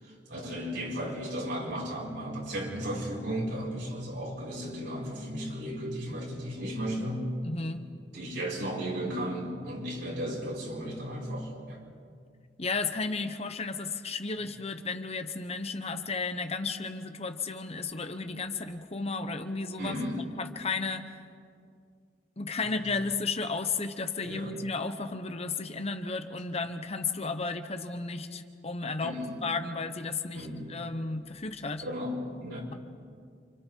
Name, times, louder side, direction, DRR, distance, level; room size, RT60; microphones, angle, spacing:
voice 1, 0.0-7.3 8.1-11.8 19.8-20.2 22.7-22.8 24.2-24.5 29.0-29.3 30.3-30.7 31.8-32.8, equal, 75° right, -4 dB, 7.6 m, -35 dB
voice 2, 7.4-7.8 12.6-19.9 20.4-21.0 22.4-29.1 29.4-31.8, left 4 dB, 35° left, 8 dB, 1.1 m, -33 dB
29.0 x 28.0 x 4.7 m, 2.3 s
head